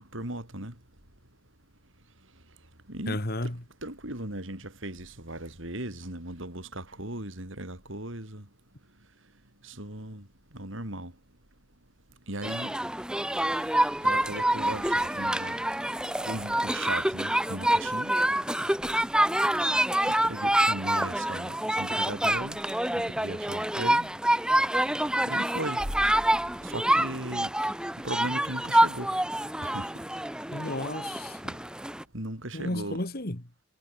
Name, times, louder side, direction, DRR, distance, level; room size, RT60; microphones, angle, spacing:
voice 1, 0.1-0.7 2.9-3.2 3.8-8.4 9.6-10.2 10.5-11.1 12.3-12.8 14.0-15.6 16.2-18.2 20.2-22.6 22.9-24.1 25.2-25.8 26.6-27.5 28.0-29.1 29.6-29.9 32.1-33.0, right 1 dB, 65° right, 6.0 m, -37 dB
voice 2, 3.1-3.6 30.5-31.6 32.5-33.6, left 1 dB, 45° left, 2.4 m, -33 dB
sound 1, 12.4-32.0, right 1 dB, 5° right, 1.1 m, -27 dB
head